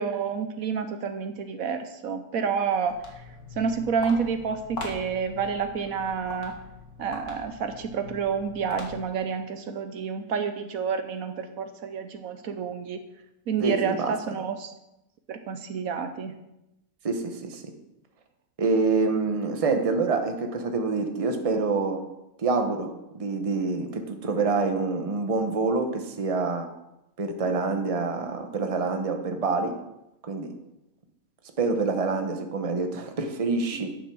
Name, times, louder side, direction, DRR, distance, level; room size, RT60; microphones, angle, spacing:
voice 1, 0.0-3.2 3.6-6.5 7.0-13.0 13.5-14.7 15.3-16.3, right 6 dB, 70° right, 8 dB, 1.2 m, -29 dB
Walk footsteps, 2.7-9.3, left 3 dB, 80° left, 2.3 m, -42 dB
voice 2, 13.6-14.1 17.0-17.6 18.6-22.0 22.4-26.7 27.2-29.7 30.2-30.5 31.6-33.9, right 4 dB, 25° right, 5 dB, 1.0 m, -26 dB
8.8 x 7.0 x 6.1 m, 0.89 s
omnidirectional pair, 1.6 m